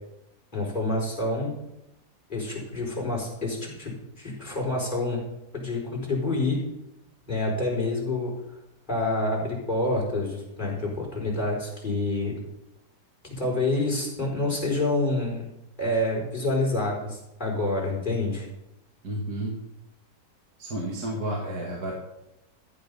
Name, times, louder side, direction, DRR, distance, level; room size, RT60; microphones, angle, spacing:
voice 1, 0.5-1.5 2.3-5.2 5.5-6.6 7.3-8.3 8.9-12.4 13.2-15.5 15.8-18.5, left 2 dB, 25° left, -3 dB, 4.7 m, -27 dB
voice 2, 19.0-19.6 20.6-21.9, right 1 dB, 55° right, -1 dB, 2.4 m, -31 dB
14.0 x 9.0 x 5.4 m, 0.87 s
omnidirectional pair, 1.9 m